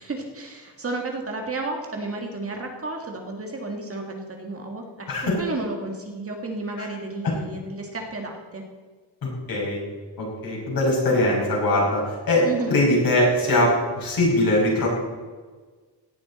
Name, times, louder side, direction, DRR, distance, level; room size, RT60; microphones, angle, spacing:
voice 1, 0.0-5.1 5.4-8.6 12.4-12.8, right 2 dB, 30° right, 1 dB, 1.8 m, -32 dB
voice 2, 5.1-5.4 6.8-6.9 7.2-7.3 9.2-9.8 10.2-14.9, left 1 dB, 50° left, -2 dB, 5.4 m, -22 dB
17.5 x 12.0 x 4.2 m, 1.4 s
wide cardioid pair, 175°, 44 cm